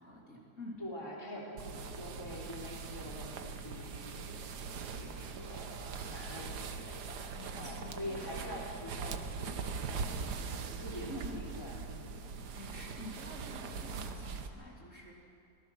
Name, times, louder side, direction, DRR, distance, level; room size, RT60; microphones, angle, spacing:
voice 1, 0.0-0.8 7.4-8.5 10.1-11.4 12.5-15.1, left 1 dB, 40° left, -3 dB, 3.5 m, -48 dB
voice 2, 0.8-10.2 10.8-12.2, left 1 dB, 10° left, -3 dB, 3.2 m, -46 dB
sound 1, 1.6-14.5, right 5 dB, 60° right, 1.6 m, -41 dB
26.0 x 18.5 x 6.3 m, 2.6 s
omnidirectional pair, 2.0 m